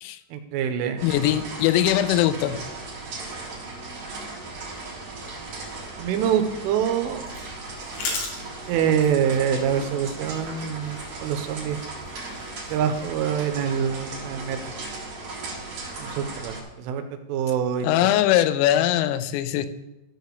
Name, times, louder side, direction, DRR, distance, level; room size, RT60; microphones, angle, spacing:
voice 1, 0.3-1.0 6.0-7.3 8.7-11.8 12.7-14.7 16.0-17.0 17.3-18.1, right 8 dB, 85° right, 7 dB, 3.2 m, -25 dB
voice 2, 1.0-2.6 17.8-19.7, left 12 dB, 85° left, 12 dB, 3.3 m, -21 dB
sound 1, 1.0-16.6, right 3 dB, 45° right, 2.6 m, -37 dB
sound 2, 6.5-13.5, left 3 dB, 65° left, 4.0 m, -39 dB
13.0 x 5.0 x 6.5 m, 0.95 s
omnidirectional pair, 5.8 m